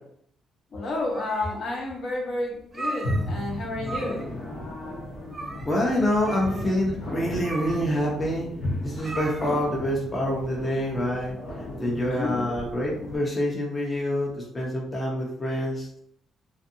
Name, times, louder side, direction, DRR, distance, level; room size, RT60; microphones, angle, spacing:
voice 1, 0.7-4.3 12.1-12.4, left 2 dB, 60° left, -1 dB, 0.8 m, -30 dB
sound 1, 0.9-1.8 2.2-2.3 2.6-3.6 3.8-4.4 4.7-4.8 5.3-5.8 6.2-9.8, right 2 dB, 25° right, 0.4 m, -37 dB
sound 2, 3.0-13.2, left 1 dB, 85° left, 1.0 m, -34 dB
voice 2, 5.7-8.5 8.8-11.4 11.8-16.0, left 1 dB, 25° left, -2 dB, 0.6 m, -26 dB
2.6 x 2.5 x 2.6 m, 0.71 s
cardioid pair, 90°, 0 cm